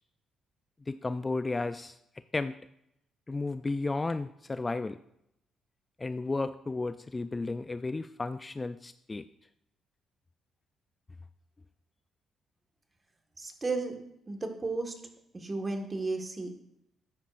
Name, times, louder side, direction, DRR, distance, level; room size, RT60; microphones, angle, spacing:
voice 1, 0.9-2.0 2.3-2.6 3.3-5.0 6.0-9.2, left 3 dB, 25° left, 12 dB, 0.3 m, -33 dB
voice 2, 13.4-13.9 14.3-14.9 15.3-16.5, right 3 dB, 25° right, 4 dB, 1.6 m, -33 dB
13.0 x 9.2 x 2.5 m, 0.77 s
cardioid pair, 90°, 0 cm